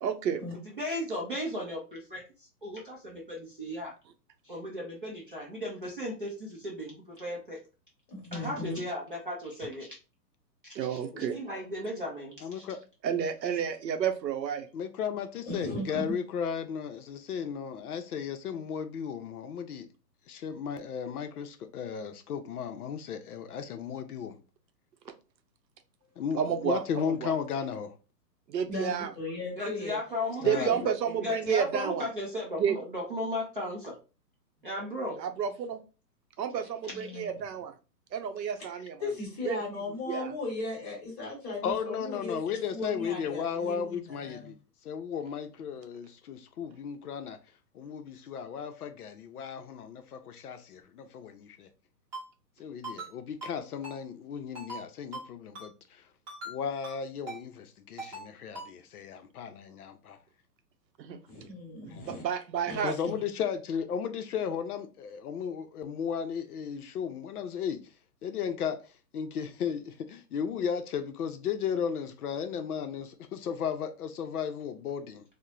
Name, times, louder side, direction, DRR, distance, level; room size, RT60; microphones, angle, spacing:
voice 1, 0.0-0.4 10.7-11.4 13.0-14.7 26.4-27.3 28.5-29.1 30.4-32.1 32.6-32.8 35.2-35.8 36.4-37.7 38.1-39.0 39.5-39.6 40.1-40.3 61.0-61.2 61.8-62.9, right 8 dB, 85° right, 0.7 m, -30 dB
voice 2, 0.6-3.9 4.4-7.6 8.3-10.0 10.6-11.0 11.3-12.7 15.6-16.0 29.6-30.7 31.2-33.9 34.6-35.2, left 1 dB, 35° right, 0.4 m, -36 dB
voice 3, 8.1-8.8 11.1-11.2 15.4-16.2 28.7-29.9 30.7-31.3 36.9-37.4 39.0-44.5 61.3-62.2 62.6-63.1, left 2 dB, 20° left, 0.9 m, -37 dB
voice 4, 12.4-12.8 14.7-19.9 20.3-24.4 26.2-27.9 30.4-30.9 41.6-44.6 44.8-47.4 47.7-51.7 52.6-56.0 56.5-60.2 61.9-62.2 62.8-67.8 68.2-68.8 69.1-75.2, left 7 dB, 65° left, 0.5 m, -35 dB
Ringtone, 52.1-52.2 52.8-53.1 53.4-53.5 53.8-54.0 54.6-54.8 55.1-55.3 55.6-55.7 56.3-56.5 56.8-57.0 57.3-57.4 58.0-58.3 58.6-58.7, right 2 dB, 20° right, 0.8 m, -40 dB
2.9 x 2.0 x 2.3 m
hypercardioid pair, 155°, 50 cm